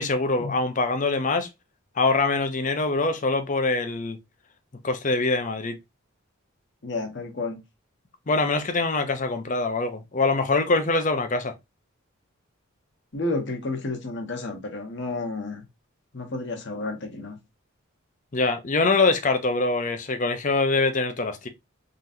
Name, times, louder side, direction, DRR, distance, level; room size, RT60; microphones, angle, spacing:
voice 1, 0.0-1.5 2.0-4.2 4.8-5.8 8.3-11.5 18.3-21.5, left 3 dB, 35° left, 0.6 m, -24 dB
voice 2, 6.8-7.6 13.1-15.6 16.1-17.4, left 2 dB, 55° left, 1.1 m, -31 dB
3.8 x 3.0 x 2.6 m
head